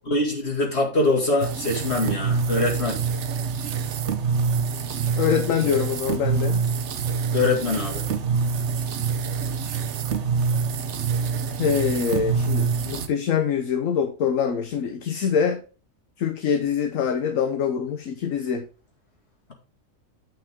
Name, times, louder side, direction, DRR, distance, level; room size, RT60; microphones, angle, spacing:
voice 1, 0.1-3.0 7.3-8.0, left 2 dB, 50° left, -1 dB, 2.4 m, -23 dB
sound 1, 1.4-13.1, right 5 dB, 60° right, 1.0 m, -26 dB
voice 2, 5.2-6.7 11.6-15.6 16.2-18.7, left 7 dB, 75° left, 6 dB, 1.2 m, -24 dB
8.9 x 5.8 x 3.5 m, 0.35 s
omnidirectional pair, 1.4 m